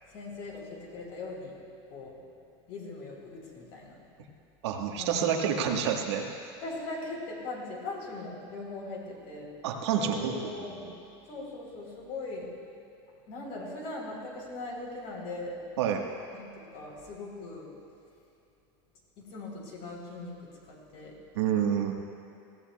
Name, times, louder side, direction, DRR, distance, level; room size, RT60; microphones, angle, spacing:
voice 1, 0.0-1.5 1.9-2.2 2.7-4.0 5.0-5.9 6.6-9.5 10.0-10.8 11.2-12.5 13.3-15.5 16.3-17.7 19.2-21.2, left 2 dB, 50° left, -1 dB, 3.7 m, -40 dB
voice 2, 4.6-6.5 9.6-10.9 15.8-16.0 21.3-21.9, right 8 dB, 90° right, 2 dB, 1.5 m, -29 dB
20.5 x 16.0 x 2.3 m, 2.7 s
supercardioid pair, 145°, 14 cm